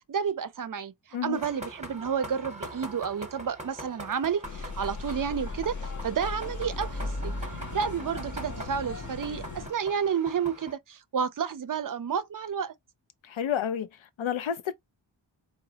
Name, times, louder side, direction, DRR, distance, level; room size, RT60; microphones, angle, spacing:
voice 1, 0.1-0.9 1.2-12.7, right 7 dB, 45° right, 0.4 m, -31 dB
sound 1, 1.3-10.7, right 1 dB, 15° right, 0.8 m, -43 dB
sound 2, 4.4-9.7, left 3 dB, 40° left, 0.7 m, -37 dB
voice 2, 13.2-14.7, left 9 dB, 90° left, 0.6 m, -30 dB
3.9 x 2.1 x 2.7 m
wide cardioid pair, 80°, 46 cm